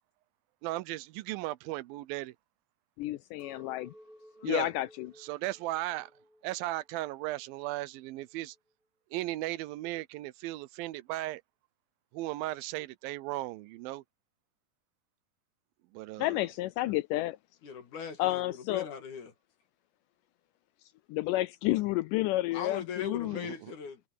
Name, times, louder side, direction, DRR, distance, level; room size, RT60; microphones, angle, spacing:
voice 1, 0.6-2.4 4.4-4.7 5.2-6.1 6.4-8.6 9.1-11.4 12.1-14.0 15.9-16.4 23.2-23.7, right 17 dB, 90° right, 2.5 m, -36 dB
voice 2, 3.0-3.9 4.4-5.1 16.2-17.4 18.2-18.9 21.1-23.5, left 17 dB, 80° left, 1.9 m, -30 dB
Chink clink, 3.4-7.7 8.1-8.7, equal, 25° right, 0.9 m, -58 dB
voice 3, 17.6-19.3 22.5-24.0, left 7 dB, 60° left, 3.4 m, -40 dB
omnidirectional pair, 4.1 m